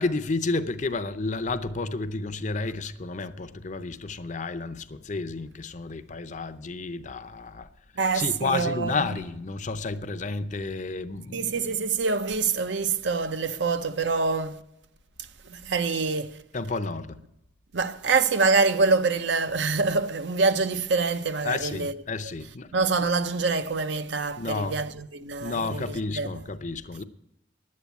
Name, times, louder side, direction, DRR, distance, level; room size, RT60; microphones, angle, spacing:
voice 1, 0.0-7.7 8.1-11.5 16.5-17.2 21.4-22.7 24.4-24.8 25.3-27.0, left 3 dB, 40° left, 0.6 m, -31 dB
voice 2, 8.0-9.2 11.3-14.6 15.4-16.4 17.7-21.9 22.7-26.4, right 4 dB, 65° right, 0.7 m, -25 dB
11.0 x 8.6 x 8.1 m
head